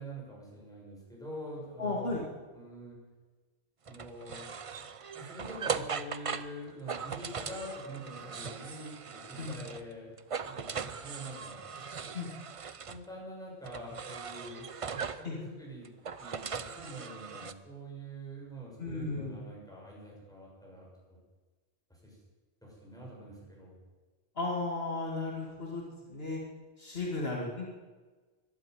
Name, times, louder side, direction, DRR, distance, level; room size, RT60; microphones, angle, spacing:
voice 1, 0.0-2.2 2.5-3.0 3.9-4.4 5.1-10.1 10.4-11.6 12.0-12.1 12.9-15.9 16.2-21.2 21.9-22.2 22.6-23.8, right 1 dB, 5° left, -5 dB, 6.7 m, -45 dB
voice 2, 1.8-2.2 9.4-9.6 12.1-12.3 15.2-15.4 18.8-19.3 24.4-25.8 26.1-26.4 26.8-27.7, left 3 dB, 65° left, -2 dB, 2.6 m, -34 dB
sound 1, 3.9-9.9 10.2-13.0 13.7-15.3 15.9-17.5, right 6 dB, 40° right, 0.6 m, -39 dB
12.5 x 12.0 x 9.4 m, 1.3 s
omnidirectional pair, 1.1 m